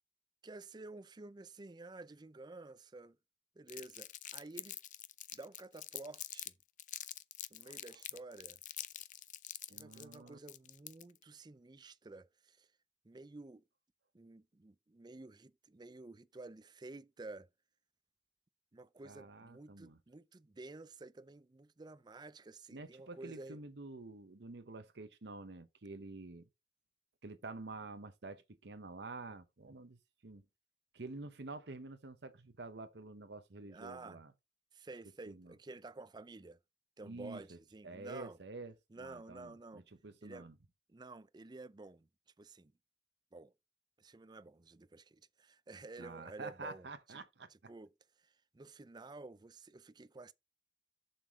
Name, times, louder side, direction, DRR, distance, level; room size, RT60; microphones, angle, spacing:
voice 1, 0.4-3.2 3.6-4.8 5.3-6.5 7.5-8.6 9.7-12.7 13.0-13.6 14.1-17.5 18.7-23.6 33.7-34.2 34.7-36.6 37.0-38.4 38.9-39.8 40.2-40.5 40.9-42.1 42.4-42.7 43.3-43.5 44.0-47.2 47.5-47.9 48.2-50.3, right 2 dB, 25° right, 0.4 m, -51 dB
Crumpling crinkling, 3.7-6.5 6.8-11.2, left 13 dB, 45° left, 0.5 m, -46 dB
voice 2, 7.6-8.0 9.7-10.4 19.0-20.0 22.7-26.5 27.2-30.4 30.9-34.3 35.3-35.5 37.0-37.6 37.8-40.6 46.0-47.7, right 3 dB, 65° right, 0.9 m, -49 dB
7.3 x 6.9 x 3.6 m
head